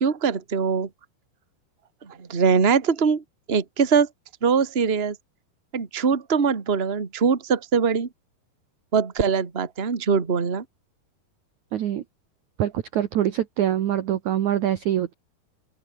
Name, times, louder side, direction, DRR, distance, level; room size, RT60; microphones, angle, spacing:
voice 1, 0.0-0.9 2.1-4.1 4.4-5.1 5.7-8.1 8.9-10.6, right 6 dB, 35° right, 0.9 m, -22 dB
voice 2, 11.7-12.0 12.6-15.1, right 11 dB, 60° right, 2.2 m, -24 dB
open air
omnidirectional pair, 4.6 m